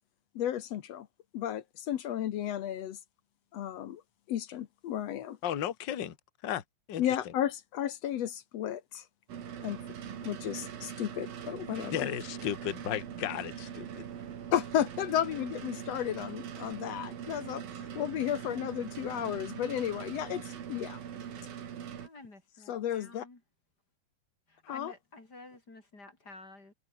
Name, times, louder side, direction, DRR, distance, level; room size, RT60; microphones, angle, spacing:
voice 1, 0.3-1.1 1.3-3.0 3.5-4.0 4.3-5.4 7.0-9.0 9.6-9.8 10.2-12.1 14.5-21.0 22.7-23.2 24.7-24.9, left 11 dB, 65° left, 1.7 m, -33 dB
voice 2, 5.4-6.2 6.4-6.6 6.9-7.3 11.9-14.0, left 10 dB, 45° left, 1.6 m, -35 dB
sound 1, 9.3-22.1, right 8 dB, 80° right, 4.4 m, -42 dB
voice 3, 11.6-12.2 22.0-23.4 24.5-26.7, left 2 dB, 25° left, 5.0 m, -51 dB
omnidirectional pair, 4.2 m